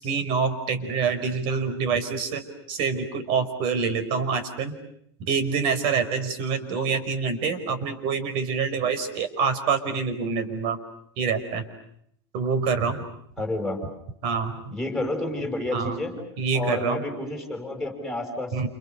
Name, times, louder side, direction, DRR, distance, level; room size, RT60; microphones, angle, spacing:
voice 1, 0.0-2.4 2.7-4.8 5.2-10.8 11.2-11.7 12.3-13.0 14.2-14.6 15.7-16.0 16.4-17.0 18.5-18.7, right 5 dB, 40° right, 10 dB, 4.9 m, -26 dB
voice 2, 13.4-13.8 14.7-16.2 16.5-18.7, left 2 dB, ahead, 2 dB, 5.8 m, -30 dB
29.5 x 29.0 x 6.9 m, 0.70 s
supercardioid pair, 160°, 14 cm